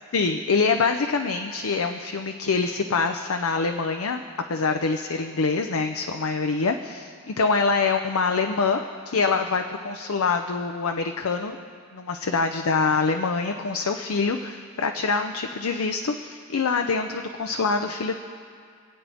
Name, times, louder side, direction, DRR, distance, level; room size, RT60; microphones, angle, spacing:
voice 1, 0.1-4.2 4.5-8.8 9.1-11.6 11.9-18.1, left 4 dB, 85° left, 5 dB, 0.6 m, -25 dB
26.5 x 8.9 x 3.5 m, 2.2 s
head